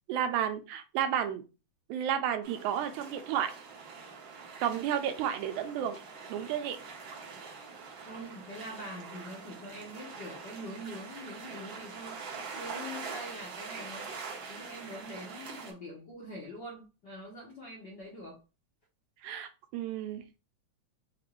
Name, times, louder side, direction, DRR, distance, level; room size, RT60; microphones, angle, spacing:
voice 1, 0.1-1.4 1.9-3.5 4.6-6.0 6.3-6.8 19.2-20.2, right 9 dB, 85° right, 2.0 m, -32 dB
sound 1, 2.4-15.7, right 5 dB, 70° right, 1.1 m, -44 dB
voice 2, 7.9-14.1 14.5-18.4, equal, 60° left, 1.1 m, -44 dB
5.3 x 2.4 x 3.0 m
omnidirectional pair, 3.4 m